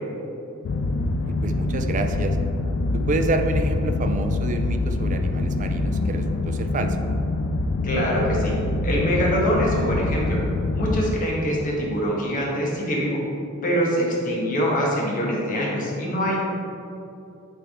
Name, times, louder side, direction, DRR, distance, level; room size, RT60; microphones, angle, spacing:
sound 1, 0.6-11.2, left 2 dB, 60° left, 0.4 m, -25 dB
voice 1, 1.2-2.4 2.9-7.0, right 3 dB, 35° right, 5 dB, 0.4 m, -28 dB
voice 2, 7.8-8.5 8.8-10.4 10.7-13.2 13.6-16.4, equal, 40° left, -4 dB, 1.3 m, -24 dB
9.1 x 3.5 x 3.6 m, 2.8 s
head